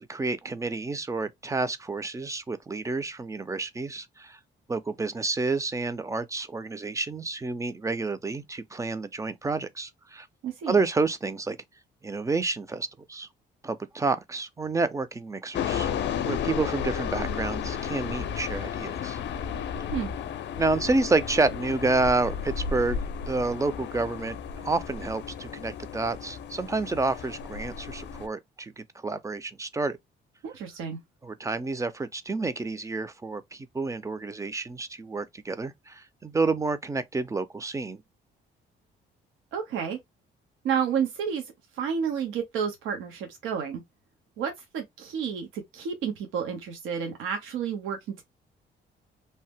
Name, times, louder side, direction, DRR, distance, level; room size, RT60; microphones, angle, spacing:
voice 1, 0.0-4.4 4.7-10.3 10.7-11.6 12.0-13.3 13.6-15.9 16.3-19.2 20.6-23.0 23.3-30.0 31.2-38.0, right 3 dB, 15° right, 0.4 m, -29 dB
voice 2, 10.4-10.8 19.9-20.1 30.4-31.0 39.5-40.0 40.6-41.4 41.8-43.8 44.4-48.2, right 7 dB, 90° right, 0.8 m, -30 dB
sound 1, 15.5-28.3, left 7 dB, 65° left, 0.5 m, -33 dB
2.8 x 2.0 x 3.3 m
cardioid pair, 90°, 20 cm